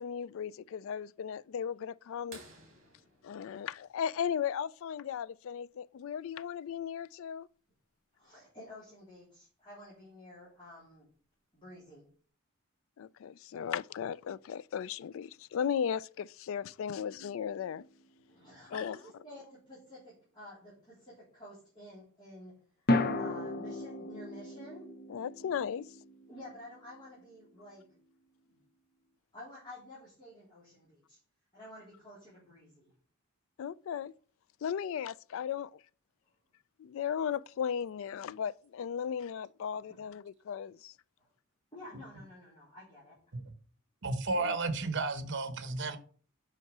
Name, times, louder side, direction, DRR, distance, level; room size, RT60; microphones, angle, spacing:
voice 1, 0.0-2.4 3.2-7.5 13.0-17.8 18.7-19.0 25.1-25.9 33.6-34.1 34.6-35.8 36.8-40.9 44.4-44.6, left 8 dB, 65° left, 0.3 m, -36 dB
sound 1, 2.3-4.8 6.7-6.8 9.0-9.1 10.8-11.1 11.9-12.0, right 3 dB, 40° right, 3.2 m, -55 dB
voice 2, 2.8-3.6 8.1-11.1 11.5-12.1 18.3-22.6 23.1-24.9 26.3-28.0 28.4-28.6 29.3-31.2 31.5-32.9 39.0-39.1 39.9-40.0 41.2-41.3 41.7-43.2, left 1 dB, 20° left, 3.7 m, -51 dB
sound 2, 17.8-18.0 22.9-27.2, left 1 dB, 45° left, 0.7 m, -35 dB
voice 3, 44.0-46.0, right 3 dB, 55° right, 1.0 m, -33 dB
8.1 x 5.8 x 4.7 m
head